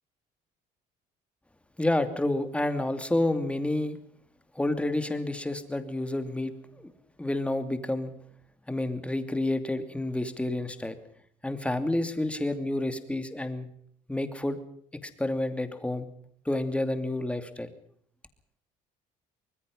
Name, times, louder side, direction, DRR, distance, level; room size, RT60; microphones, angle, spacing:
voice 1, 1.8-4.0 4.5-6.5 6.8-6.9 7.2-8.1 8.7-11.0 11.4-13.7 14.1-14.6 14.9-16.1 16.4-17.7, left 1 dB, 5° left, 9 dB, 2.7 m, -29 dB
24.5 x 21.0 x 5.5 m, 0.67 s
cardioid pair, 110°, 17 cm